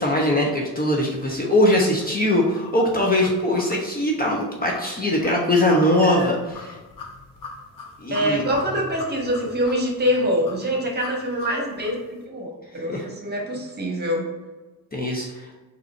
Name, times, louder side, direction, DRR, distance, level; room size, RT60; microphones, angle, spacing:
voice 1, 0.0-6.4 6.6-6.8 8.0-8.4 12.9-13.1 14.9-15.5, left 1 dB, 20° left, -2 dB, 0.9 m, -21 dB
sound 1, 2.0-12.0, left 4 dB, 55° left, 1.2 m, -41 dB
voice 2, 6.0-6.3 8.1-14.3, equal, 25° right, -1 dB, 1.4 m, -25 dB
3.8 x 2.9 x 4.3 m, 1.2 s
supercardioid pair, 65°, 40 cm